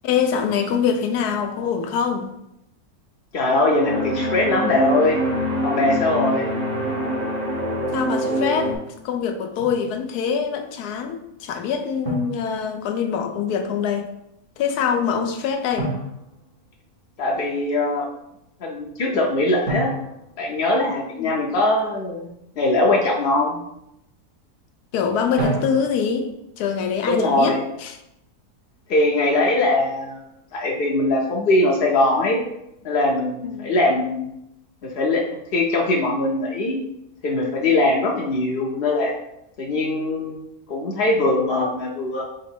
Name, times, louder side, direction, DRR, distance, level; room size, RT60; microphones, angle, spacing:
voice 1, 0.0-2.3 7.9-8.8 9.0-14.1 14.6-15.9 21.2-21.4 24.9-26.3 26.6-28.0 33.4-33.7, left 7 dB, 90° left, 6 dB, 1.1 m, -24 dB
voice 2, 3.3-5.2 5.6-6.5 17.2-18.1 18.6-19.9 20.4-22.3 22.6-23.6 27.1-27.6 28.9-30.2 30.5-32.4 32.8-34.3 34.8-35.2 35.5-36.8 37.2-39.1 39.6-40.4 40.7-42.2, left 2 dB, 55° left, -2 dB, 0.6 m, -21 dB
sound 1, 3.8-8.8, equal, 55° right, 0.4 m, -24 dB
Drum, 9.6-9.9 12.0-13.2 15.8-17.2 19.7-21.4 25.4-26.3, right 2 dB, 80° right, 1.7 m, -31 dB
3.8 x 3.1 x 4.3 m, 0.82 s
omnidirectional pair, 1.6 m